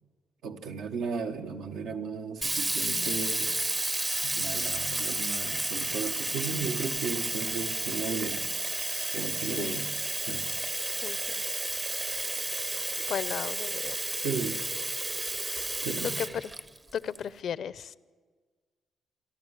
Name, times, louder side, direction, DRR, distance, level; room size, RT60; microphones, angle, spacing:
voice 1, 0.4-3.5 4.2-8.5 9.1-9.9 10.3-10.5 14.2-14.6 15.8-16.2, right 5 dB, 85° right, 3 dB, 1.6 m, -35 dB
Sink (filling or washing), 2.4-17.2, right 2 dB, 20° right, 0.7 m, -32 dB
voice 2, 9.6-9.9 11.0-11.4 13.1-14.0 16.2-16.5 16.9-18.0, left 8 dB, 60° left, 18 dB, 0.6 m, -35 dB
27.5 x 11.5 x 9.8 m, 1.5 s
cardioid pair, 90°, 0 cm